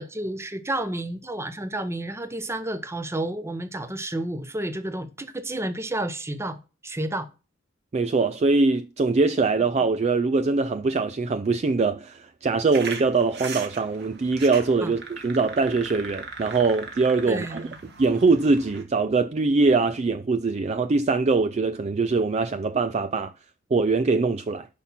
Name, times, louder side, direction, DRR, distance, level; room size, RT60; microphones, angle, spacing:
voice 1, 0.0-6.6 6.8-7.3 14.8-14.9 17.3-17.8, right 1 dB, 15° right, 0.9 m, -31 dB
voice 2, 7.9-17.7 18.0-23.3 23.7-24.7, right 3 dB, 35° right, 0.4 m, -22 dB
sound 1, 12.7-18.8, right 5 dB, 55° right, 1.9 m, -39 dB
9.8 x 5.8 x 5.8 m
head